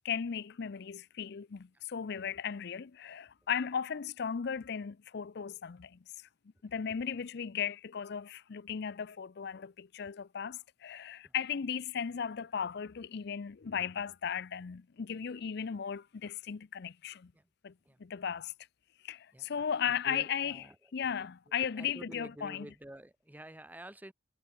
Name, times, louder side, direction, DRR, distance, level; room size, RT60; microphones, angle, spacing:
voice 1, 0.0-6.0 6.6-17.3 17.6-17.7 18.0-18.5 19.0-20.6 20.9-22.7, left 7 dB, 60° left, 0.5 m, -36 dB
voice 2, 19.3-20.8 21.5-24.1, right 1 dB, 10° right, 0.8 m, -50 dB
head